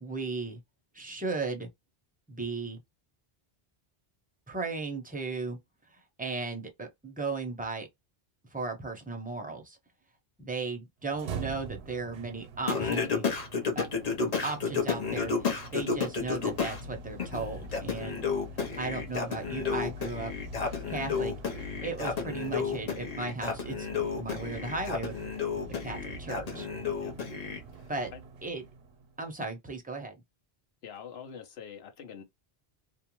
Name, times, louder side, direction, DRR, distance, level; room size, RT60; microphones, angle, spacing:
voice 1, 0.0-0.6 0.9-1.7 2.3-2.8 4.5-5.6 5.9-7.9 8.5-9.8 10.4-13.3 13.7-13.9 14.4-18.2 18.5-20.3 20.9-21.3 21.8-25.1 25.8-26.7 27.9-28.1 28.4-28.6 29.2-30.2, right 3 dB, 10° right, 0.5 m, -36 dB
sound 1, 11.0-29.2, right 1 dB, 90° right, 0.8 m, -44 dB
Singing, 12.7-16.8 17.2-27.6, left 5 dB, 45° left, 0.7 m, -32 dB
voice 2, 30.8-32.2, left 7 dB, 80° left, 1.0 m, -44 dB
2.5 x 2.2 x 2.9 m
omnidirectional pair, 1.1 m